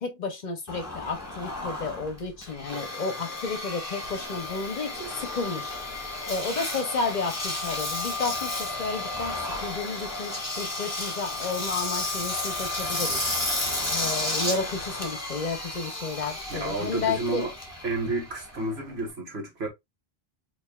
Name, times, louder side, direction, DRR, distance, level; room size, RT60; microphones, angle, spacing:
voice 1, 0.0-5.8 6.3-13.2 13.9-17.5, left 4 dB, 50° left, 0.7 m, -32 dB
Engine, 0.7-19.1, left 2 dB, 15° left, 1.1 m, -32 dB
voice 2, 16.5-17.5 17.8-19.7, right 2 dB, 80° right, 1.8 m, -30 dB
4.5 x 3.0 x 2.2 m
omnidirectional pair, 1.1 m